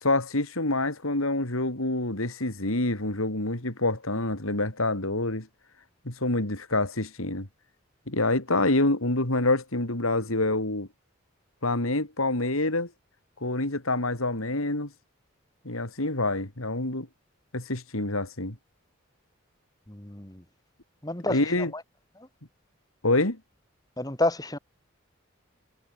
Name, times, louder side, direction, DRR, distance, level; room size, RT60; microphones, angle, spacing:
voice 1, 0.0-5.5 6.1-7.5 8.1-10.9 11.6-12.9 13.4-14.9 15.6-17.1 17.5-18.6 21.3-21.7 23.0-23.4, left 2 dB, 85° left, 3.8 m, -27 dB
voice 2, 19.9-20.4 21.0-21.4 24.0-24.6, left 1 dB, 15° left, 2.1 m, -29 dB
head